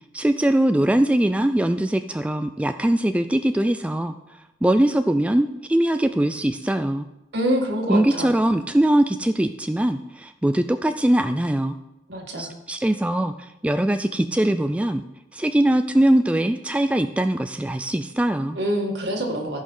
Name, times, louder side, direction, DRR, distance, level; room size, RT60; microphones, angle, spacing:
voice 1, 0.1-4.1 4.6-7.1 7.9-11.8 12.4-15.0 15.3-18.6, right 1 dB, 5° right, 8 dB, 0.3 m, -21 dB
voice 2, 7.3-8.3 12.1-12.5 18.6-19.6, equal, 65° right, 1 dB, 1.9 m, -25 dB
14.5 x 5.5 x 5.5 m, 0.93 s
head